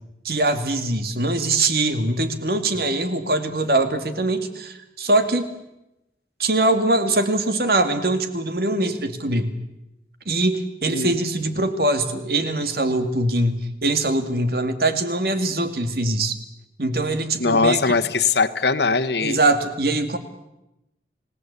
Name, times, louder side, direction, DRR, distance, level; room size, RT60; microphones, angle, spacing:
voice 1, 0.2-5.5 6.4-9.5 10.3-16.4 16.8-17.8 19.2-20.2, right 2 dB, 55° right, 9 dB, 2.3 m, -22 dB
voice 2, 17.4-19.4, left 4 dB, 70° left, 9 dB, 1.4 m, -20 dB
30.0 x 18.0 x 8.3 m, 0.90 s
head